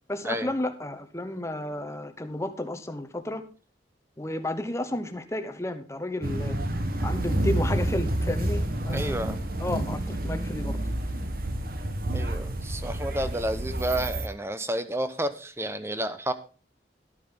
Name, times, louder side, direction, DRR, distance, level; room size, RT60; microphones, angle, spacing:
voice 1, 0.1-3.4 4.2-6.6 7.0-9.2 9.6-10.8, left 1 dB, 15° left, 9 dB, 0.9 m, -32 dB
sound 1, 6.2-14.3, right 1 dB, 50° right, 1.3 m, -29 dB
voice 2, 8.9-9.4 12.1-16.3, right 1 dB, 15° right, 11 dB, 0.8 m, -30 dB
12.5 x 9.2 x 3.8 m, 0.36 s
head